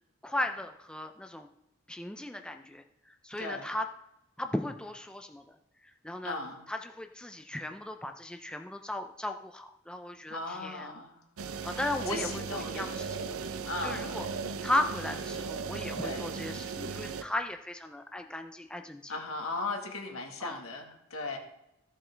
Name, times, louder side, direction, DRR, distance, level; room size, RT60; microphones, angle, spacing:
voice 1, 0.2-1.5 1.9-3.9 4.4-5.6 5.8-6.4 6.7-11.0 11.6-13.3 13.8-14.3 14.6-19.1 20.4-20.6, left 1 dB, 5° left, 5 dB, 0.4 m, -36 dB
voice 2, 3.4-3.7 6.2-6.6 10.3-11.1 11.5-13.0 13.7-14.2 16.0-16.3 19.1-21.4, left 3 dB, 80° left, 3 dB, 1.6 m, -37 dB
sound 1, 11.4-17.2, right 5 dB, 90° right, 0.6 m, -37 dB
14.0 x 7.6 x 3.4 m, 0.86 s
head